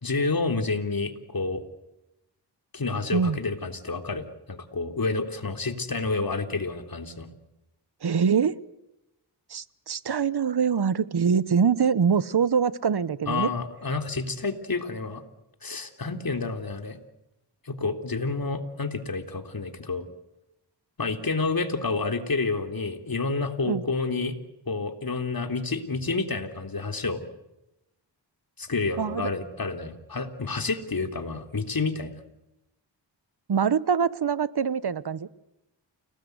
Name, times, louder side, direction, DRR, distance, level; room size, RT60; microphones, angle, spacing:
voice 1, 0.0-1.6 2.7-7.3 13.3-15.2 15.6-17.0 17.7-20.0 21.0-24.4 24.7-27.2 28.6-32.2, left 3 dB, 50° left, 6 dB, 3.6 m, -29 dB
voice 2, 8.0-8.6 9.5-13.5 23.6-23.8 29.0-29.3 33.5-35.3, right 6 dB, 60° right, 17 dB, 1.2 m, -24 dB
29.5 x 19.5 x 8.1 m, 0.91 s
cardioid pair, 55°, 44 cm